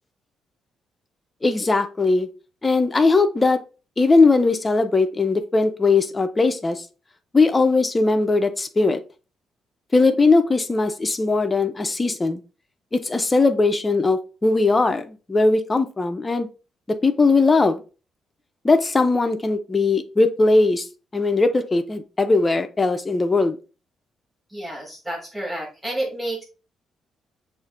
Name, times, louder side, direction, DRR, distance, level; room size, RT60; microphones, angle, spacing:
voice 1, 1.4-2.3 2.6-3.6 4.0-6.8 7.3-9.0 9.9-12.4 12.9-16.5 16.9-17.8 18.6-20.9 21.1-23.6, left 3 dB, 15° left, 8 dB, 0.4 m, -19 dB
voice 2, 24.5-26.4, right 1 dB, 5° right, -2 dB, 1.4 m, -30 dB
6.6 x 2.4 x 2.4 m, 0.33 s
cardioid pair, 155°, 0 cm